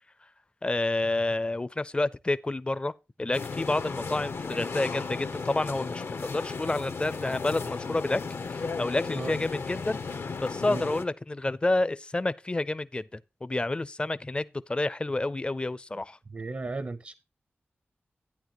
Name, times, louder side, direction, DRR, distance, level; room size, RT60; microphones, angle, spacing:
voice 1, 0.6-2.9 3.2-8.2 8.5-10.0 10.4-16.2, left 2 dB, 25° left, 0.5 m, -29 dB
sound 1, 3.3-11.0, left 4 dB, 85° left, 1.2 m, -35 dB
voice 2, 16.3-17.1, right 3 dB, 45° right, 0.6 m, -34 dB
11.5 x 9.3 x 3.0 m
wide cardioid pair, 105°, 4 cm